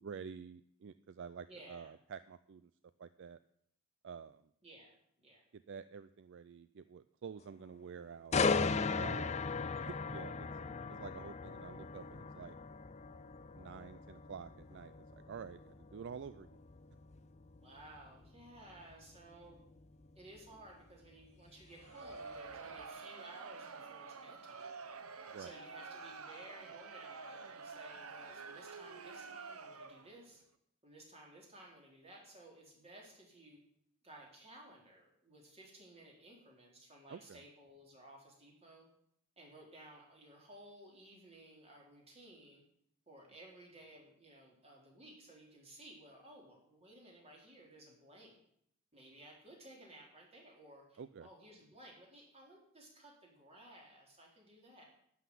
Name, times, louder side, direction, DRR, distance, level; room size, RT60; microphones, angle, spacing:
voice 1, 0.0-2.7 3.0-3.4 4.0-4.5 5.5-8.5 8.9-9.4 9.8-10.5 10.9-12.6 13.5-16.6 25.3-25.5 37.1-37.4 51.0-51.3, right 6 dB, 55° right, 14 dB, 0.4 m, -49 dB
voice 2, 1.5-1.9 4.6-5.4 9.0-9.4 9.7-9.9 17.6-19.6 20.2-24.8 25.4-30.4 30.8-33.6 34.0-38.9 39.4-42.6 43.1-48.3 48.9-54.8, right 1 dB, 30° right, -1 dB, 3.5 m, -57 dB
sound 1, 8.3-22.2 22.6-22.8, left 4 dB, 30° left, 0.5 m, -38 dB
Crowd, 21.7-30.2, right 4 dB, 75° right, 1.0 m, -49 dB
11.5 x 6.0 x 9.2 m, 0.71 s
head